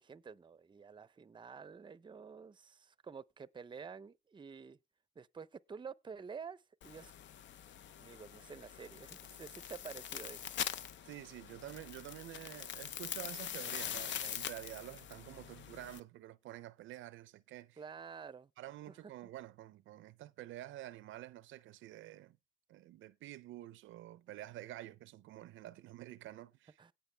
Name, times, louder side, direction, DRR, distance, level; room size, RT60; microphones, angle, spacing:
voice 1, 0.0-4.8 5.2-7.1 8.0-10.4 17.8-18.5 26.8-26.9, right 6 dB, 25° right, 0.6 m, -49 dB
sound 1, 6.8-16.0, left 9 dB, 70° left, 0.8 m, -44 dB
voice 2, 11.1-17.8 18.6-22.4 22.7-26.8, right 14 dB, 80° right, 0.5 m, -49 dB
17.5 x 5.8 x 3.3 m
cardioid pair, 90°, 20 cm